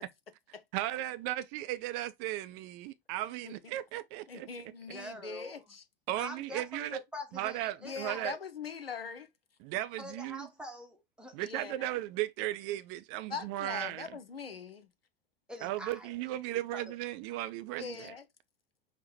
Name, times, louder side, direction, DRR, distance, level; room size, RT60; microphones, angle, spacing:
voice 1, 0.7-4.5 6.1-7.0 7.3-8.4 9.6-10.5 11.3-14.2 15.6-18.1, right 15 dB, 30° right, 0.4 m, -36 dB
voice 2, 4.3-5.8 7.8-9.3 11.4-12.0 13.3-14.9 17.8-18.2, left 5 dB, 80° left, 0.6 m, -42 dB
voice 3, 4.9-5.6 6.2-8.3 10.0-11.4 15.5-16.2 16.7-16.9, equal, 5° right, 0.9 m, -45 dB
5.5 x 2.1 x 4.1 m
figure-of-eight pair, 90°, 29 cm